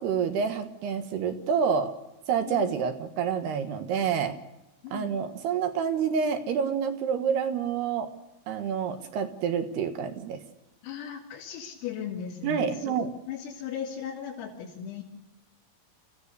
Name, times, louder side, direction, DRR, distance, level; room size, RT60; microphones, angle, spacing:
voice 1, 0.0-1.9 2.3-4.4 4.9-8.1 8.5-10.4 12.4-13.1, right 7 dB, 65° right, 7 dB, 2.9 m, -28 dB
voice 2, 10.8-15.0, left 8 dB, 85° left, -4 dB, 5.7 m, -37 dB
28.5 x 16.0 x 6.8 m, 0.96 s
omnidirectional pair, 5.9 m